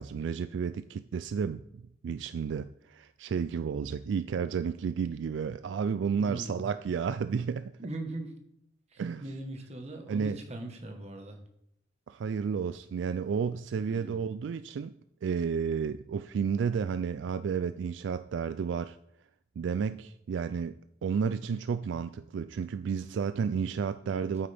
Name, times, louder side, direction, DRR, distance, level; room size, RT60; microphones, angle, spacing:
voice 1, 0.0-7.7 9.0-9.2 10.1-10.4 12.1-14.9 15.2-19.0 19.6-24.5, right 6 dB, 70° right, 0.3 m, -32 dB
voice 2, 6.2-6.6 7.8-8.3 8.9-11.4 13.8-14.2 24.1-24.3, right 2 dB, 35° right, 1.3 m, -40 dB
8.8 x 8.6 x 3.4 m
head